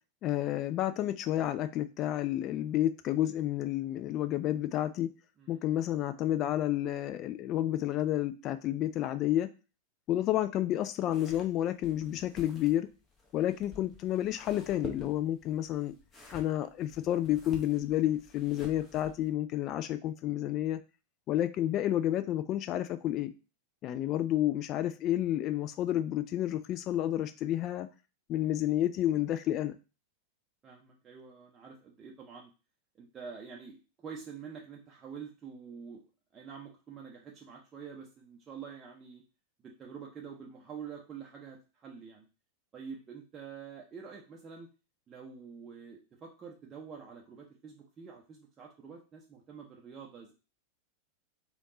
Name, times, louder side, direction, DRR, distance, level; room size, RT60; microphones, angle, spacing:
voice 1, 0.2-5.1 5.5-9.5 10.1-12.9 13.3-15.9 16.3-20.8 21.3-23.3 23.8-27.9 28.3-29.8, left 12 dB, 35° left, 0.3 m, -30 dB
sound 1, 11.0-19.3, left 2 dB, 20° left, 0.9 m, -50 dB
voice 2, 30.6-32.5 33.0-36.0 36.3-39.2 39.6-42.3 42.7-44.7 45.1-50.3, right 6 dB, 25° right, 0.6 m, -47 dB
3.5 x 2.4 x 3.8 m
figure-of-eight pair, 90°, 0 cm